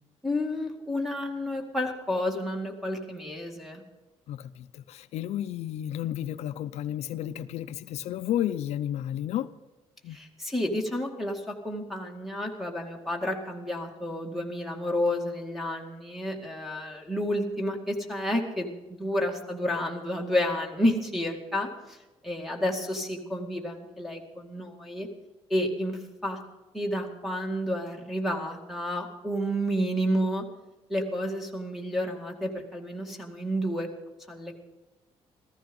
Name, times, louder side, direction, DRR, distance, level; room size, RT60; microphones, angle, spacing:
voice 1, 0.2-3.8 10.1-22.0 22.2-25.1 25.5-26.4 26.7-30.5 30.9-33.9 34.3-34.5, equal, ahead, 2 dB, 2.1 m, -30 dB
voice 2, 4.3-9.5 10.0-10.2, left 11 dB, 80° left, 11 dB, 0.5 m, -32 dB
15.0 x 14.5 x 5.4 m, 1.1 s
cardioid pair, 135°, 11 cm